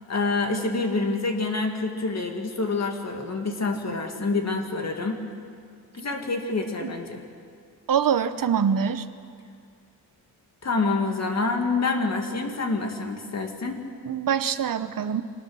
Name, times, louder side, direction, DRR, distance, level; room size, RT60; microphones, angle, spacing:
voice 1, 0.1-5.2 5.9-7.2 10.6-13.8, left 3 dB, 45° left, 4 dB, 2.1 m, -27 dB
voice 2, 7.9-9.0 14.0-15.2, right 7 dB, 60° right, 12 dB, 0.9 m, -24 dB
25.0 x 19.0 x 6.4 m, 2.2 s
wide cardioid pair, 155°, 38 cm